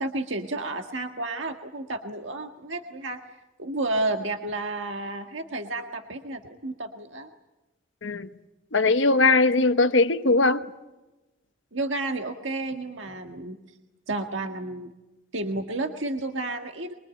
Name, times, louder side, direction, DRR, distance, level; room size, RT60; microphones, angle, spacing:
voice 1, 0.0-3.2 3.6-7.3 11.7-13.6 14.1-14.9 15.3-16.9, right 2 dB, 70° right, 1.7 m, -31 dB
voice 2, 8.7-10.7, left 3 dB, 70° left, 1.2 m, -20 dB
24.5 x 23.5 x 9.1 m
head